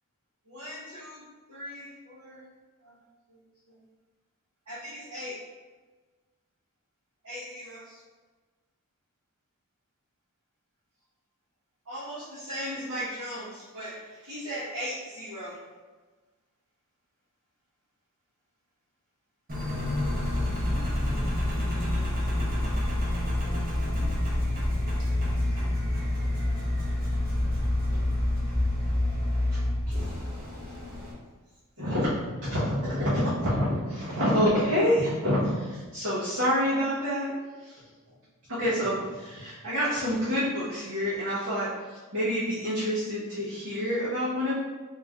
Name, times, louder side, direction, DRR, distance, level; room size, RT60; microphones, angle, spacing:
voice 1, 0.5-1.2 1.5-2.4 2.8-2.9 4.7-5.4 7.2-8.0 11.9-15.6 29.5-29.6 31.8-37.3 37.6-37.8 38.5-44.5, equal, 70° right, -12 dB, 1.2 m, -29 dB
Engine, 19.5-31.1, left 1 dB, 45° right, 1.0 m, -27 dB
3.2 x 2.9 x 3.6 m, 1.3 s
head